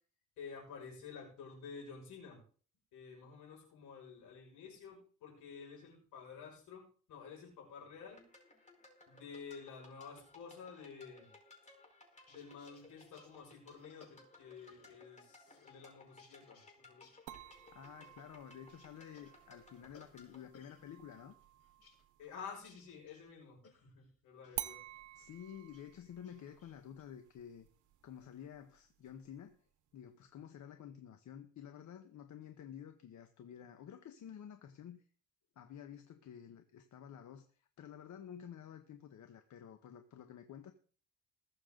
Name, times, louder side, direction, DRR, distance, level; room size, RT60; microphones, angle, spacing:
voice 1, 0.4-2.4 2.9-8.3 9.1-11.3 12.3-17.2 22.2-24.8, left 5 dB, 85° left, 6.5 m, -51 dB
sound 1, 8.0-20.4, left 3 dB, 25° left, 4.7 m, -61 dB
sound 2, 12.1-15.2 15.5-16.7 17.0-20.8 21.1-24.1 24.4-24.7 25.2-25.9 26.2-27.0, left 4 dB, 50° left, 5.4 m, -67 dB
sound 3, 17.3-22.9 24.6-29.6, right 13 dB, 80° right, 0.9 m, -51 dB
voice 2, 17.7-21.3 25.1-27.7 28.0-29.6 29.9-35.0 35.5-40.7, left 9 dB, 70° left, 1.4 m, -51 dB
21.0 x 7.2 x 4.0 m
cardioid pair, 90°, 30 cm